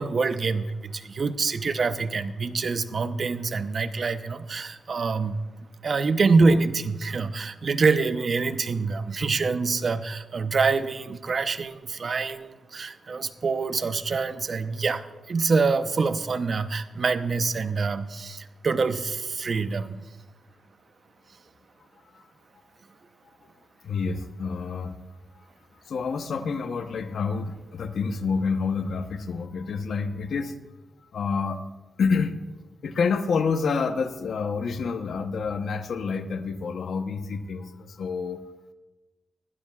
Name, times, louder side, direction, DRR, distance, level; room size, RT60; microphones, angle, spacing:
voice 1, 0.0-5.4 5.8-20.0, right 4 dB, 50° right, 11 dB, 0.7 m, -25 dB
voice 2, 23.8-24.9 25.9-30.5 31.1-31.6 32.0-32.4 32.8-38.4, left 5 dB, 70° left, 8 dB, 0.8 m, -28 dB
20.5 x 12.0 x 2.4 m, 1.2 s
cardioid pair, 100°, 0 cm